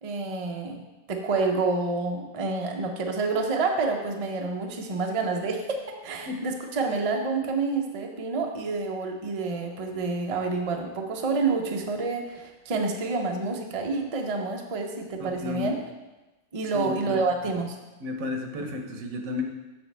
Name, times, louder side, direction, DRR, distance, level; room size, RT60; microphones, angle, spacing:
voice 1, 0.0-0.8 1.1-15.7 16.5-17.8, right 3 dB, 40° right, 2 dB, 0.5 m, -28 dB
voice 2, 15.2-15.8 16.7-17.2 18.0-19.4, left 3 dB, 80° right, 3 dB, 1.3 m, -32 dB
6.9 x 6.4 x 3.3 m, 1.1 s
omnidirectional pair, 1.4 m